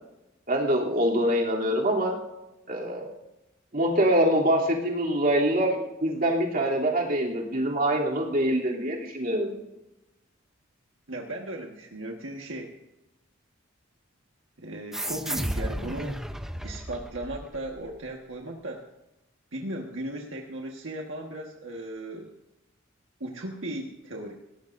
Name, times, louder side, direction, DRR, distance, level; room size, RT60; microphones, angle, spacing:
voice 1, 0.5-2.2 2.7-3.1 3.7-9.5, right 1 dB, 45° right, -2 dB, 3.0 m, -24 dB
voice 2, 11.1-12.8 14.6-16.2 16.6-18.9 19.5-22.3 23.2-24.3, right 1 dB, 70° right, 0 dB, 1.5 m, -36 dB
sound 1, 14.9-18.0, equal, ahead, 0.7 m, -33 dB
20.5 x 18.0 x 2.6 m, 0.97 s
head